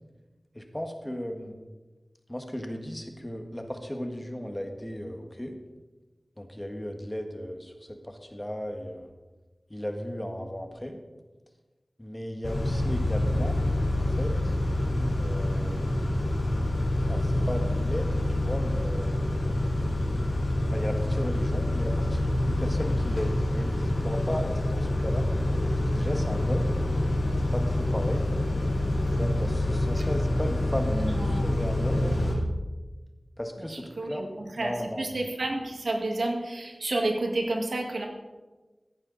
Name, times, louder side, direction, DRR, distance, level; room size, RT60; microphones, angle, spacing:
voice 1, 0.6-1.5 2.3-5.6 6.4-9.1 9.7-11.0 12.0-13.6 14.0-14.5 15.1-16.2 17.1-19.2 20.7-25.3 25.8-26.8 27.5-28.3 29.1-32.1 33.4-34.2 34.6-35.1, equal, 15° left, 4 dB, 1.6 m, -35 dB
Car / Idling / Accelerating revving vroom, 12.4-32.3, left 1 dB, 70° left, 3.5 m, -26 dB
voice 2, 30.9-31.5 31.9-32.1 33.7-38.1, right 2 dB, 90° right, 2 dB, 1.8 m, -31 dB
15.0 x 10.5 x 4.0 m, 1.2 s
wide cardioid pair, 65°, 0 cm